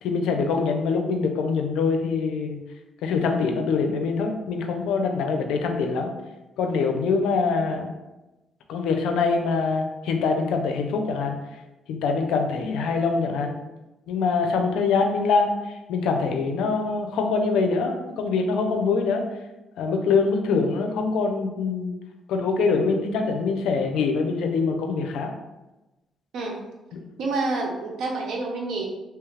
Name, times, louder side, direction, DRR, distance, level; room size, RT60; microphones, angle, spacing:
voice 1, 0.0-2.6 3.0-6.1 6.6-7.9 8.7-11.4 11.9-13.6 14.1-19.2 19.8-22.0 22.3-25.3 26.9-27.0, left 4 dB, 85° left, 4 dB, 0.4 m, -24 dB
voice 2, 27.2-28.8, right 3 dB, 75° right, 0 dB, 0.7 m, -28 dB
3.0 x 2.3 x 3.2 m, 1.0 s
cardioid pair, 90°, 0 cm